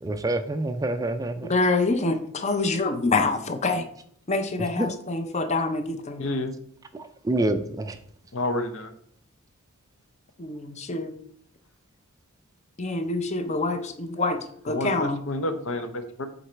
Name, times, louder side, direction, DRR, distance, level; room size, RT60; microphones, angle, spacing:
voice 1, 0.0-1.5 4.8-4.9 6.9-8.0, right 2 dB, 15° right, 9 dB, 0.3 m, -27 dB
voice 2, 1.5-3.9 4.3-6.2 10.4-11.2 12.8-15.2, left 3 dB, 30° left, 9 dB, 0.6 m, -26 dB
voice 3, 6.2-6.5 8.3-8.9 14.7-16.3, left 2 dB, 65° left, 9 dB, 0.8 m, -29 dB
7.9 x 4.0 x 4.5 m, 0.63 s
head